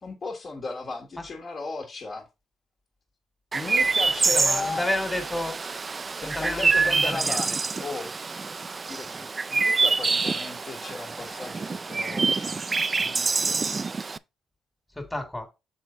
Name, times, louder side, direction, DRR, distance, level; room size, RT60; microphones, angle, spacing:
voice 1, 0.0-2.3 3.5-4.8 6.2-8.1 8.9-12.6 13.0-13.8, left 3 dB, 40° left, 1.6 m, -36 dB
Chirp tweet, 3.5-14.2, right 4 dB, 30° right, 0.3 m, -26 dB
voice 2, 4.3-5.6 6.2-7.4 15.0-15.5, left 1 dB, 10° left, 1.8 m, -31 dB
6.4 x 4.4 x 3.8 m
cardioid pair, 90°, 0 cm